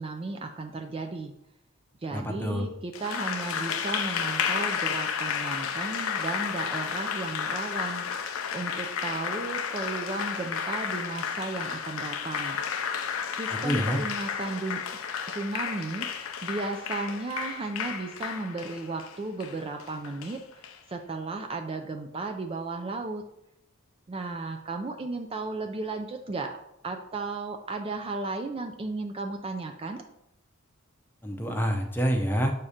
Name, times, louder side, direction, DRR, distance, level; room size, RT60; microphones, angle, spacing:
voice 1, 0.0-1.3 2.0-8.1 8.5-12.6 13.4-15.0 15.3-23.2 24.1-26.6 26.8-30.0, right 3 dB, 25° right, 5 dB, 0.4 m, -34 dB
voice 2, 2.1-2.7 13.6-14.0 31.2-32.5, equal, 10° left, 3 dB, 0.6 m, -27 dB
Applause, 2.9-20.8, left 7 dB, 75° left, 0.5 m, -32 dB
7.1 x 2.8 x 4.9 m, 0.81 s
head